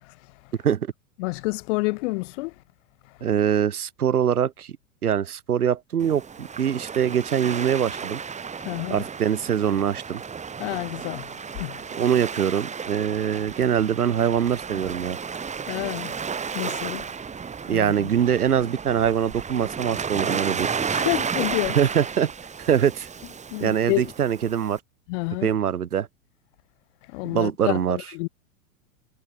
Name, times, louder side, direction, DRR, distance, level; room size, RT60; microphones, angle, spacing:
voice 1, 1.2-2.5 8.6-9.0 10.6-11.8 15.7-16.2 16.5-17.1 17.7-18.1 20.9-21.8 23.5-24.1 25.1-25.5 27.1-28.3, left 25 dB, 55° left, 2.1 m, -29 dB
voice 2, 3.2-4.8 5.0-8.2 8.9-10.2 12.0-15.2 17.7-20.7 21.7-22.3 22.6-23.1 23.6-24.8 25.4-26.1 27.3-28.0, right 9 dB, 90° right, 3.2 m, -23 dB
Waves surf, 6.0-24.8, right 6 dB, 15° right, 2.3 m, -33 dB
hypercardioid pair, 110°, 43 cm